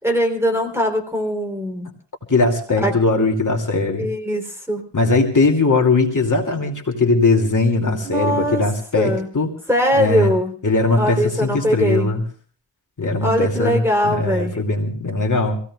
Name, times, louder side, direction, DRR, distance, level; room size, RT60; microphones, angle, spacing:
voice 1, 0.0-1.9 2.8-3.0 4.0-4.8 8.0-8.6 9.0-9.3 9.7-10.5 11.0-12.2 13.2-14.5, equal, 5° right, 2 dB, 3.8 m, -21 dB
voice 2, 2.3-4.1 4.9-9.5 10.0-10.3 10.6-12.2 13.0-15.6, left 3 dB, 45° left, 1 dB, 2.8 m, -19 dB
26.0 x 17.0 x 2.4 m, 0.41 s
wide cardioid pair, 110°, 42 cm